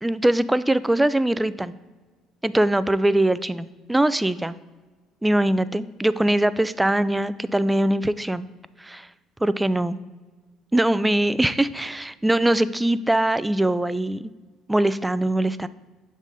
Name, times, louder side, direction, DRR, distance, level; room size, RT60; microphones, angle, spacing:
voice 1, 0.0-1.7 2.4-4.6 5.2-8.4 8.8-9.1 9.4-10.0 10.7-14.3 14.7-15.7, right 1 dB, 10° right, 15 dB, 0.3 m, -22 dB
7.0 x 3.7 x 4.1 m, 1.4 s
hypercardioid pair, 60°, 0 cm